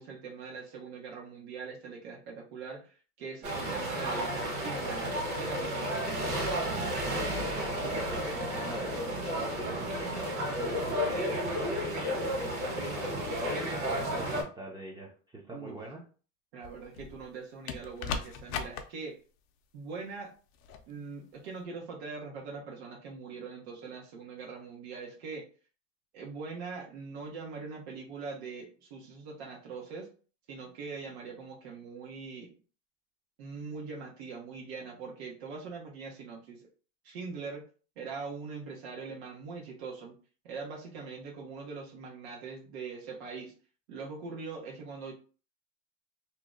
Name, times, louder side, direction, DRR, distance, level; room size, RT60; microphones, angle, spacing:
voice 1, 0.0-5.9 15.5-15.8 16.5-19.2 19.7-20.3 20.9-25.4 26.1-30.1 30.5-32.5 33.4-36.6 37.0-37.6 38.0-40.2 40.4-43.5 43.9-45.1, right 4 dB, 85° right, -1 dB, 1.0 m, -42 dB
sound 1, 3.4-14.4, equal, 50° right, 1.5 m, -32 dB
voice 2, 7.1-12.0 12.7-16.0, right 1 dB, 15° right, -2 dB, 0.5 m, -43 dB
sound 2, 16.6-17.2 17.7-18.8 20.6-20.8, left 6 dB, 50° left, 0.5 m, -37 dB
2.8 x 2.1 x 3.6 m, 0.38 s
supercardioid pair, 145°, 31 cm